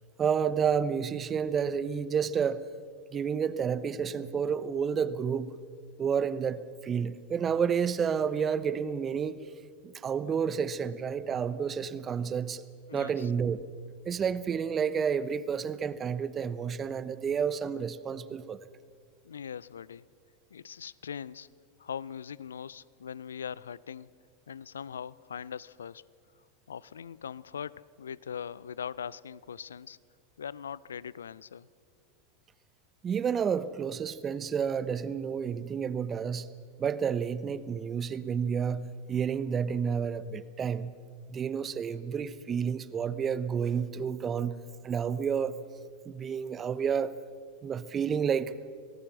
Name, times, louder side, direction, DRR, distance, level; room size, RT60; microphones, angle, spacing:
voice 1, 0.2-2.6 3.1-5.5 6.0-9.4 9.8-12.6 12.9-13.6 14.0-18.7 33.0-36.5 36.8-40.9 41.3-44.6 44.8-45.6 46.0-47.2 47.6-48.5, right 7 dB, 25° right, 15 dB, 1.0 m, -30 dB
voice 2, 12.9-13.3 19.2-20.0 20.5-21.5 21.8-24.1 24.5-26.0 26.7-30.0 30.4-31.7, left 7 dB, 75° left, 21 dB, 0.5 m, -41 dB
27.0 x 18.5 x 6.3 m, 2.1 s
figure-of-eight pair, 90°, 0 cm